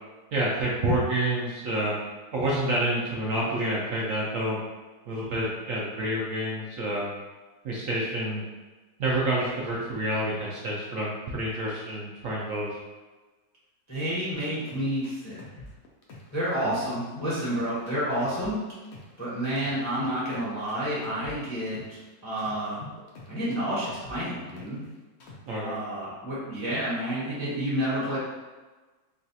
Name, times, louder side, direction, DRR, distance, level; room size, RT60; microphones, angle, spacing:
voice 1, 0.3-1.9 2.3-4.6 5.1-7.1 7.6-8.4 9.0-12.8 16.6-16.7 25.5-25.8, right 1 dB, 65° right, -5 dB, 0.9 m, -28 dB
voice 2, 13.9-15.4 16.3-18.6 19.2-22.8 23.3-24.8 25.6-28.2, equal, 15° left, -9 dB, 0.6 m, -30 dB
sound 1, 14.3-16.4 16.7-19.2 19.6-22.0 22.4-24.9 25.2-25.6, left 3 dB, 70° left, 0.6 m, -45 dB
4.0 x 2.3 x 2.7 m, 1.3 s
omnidirectional pair, 1.8 m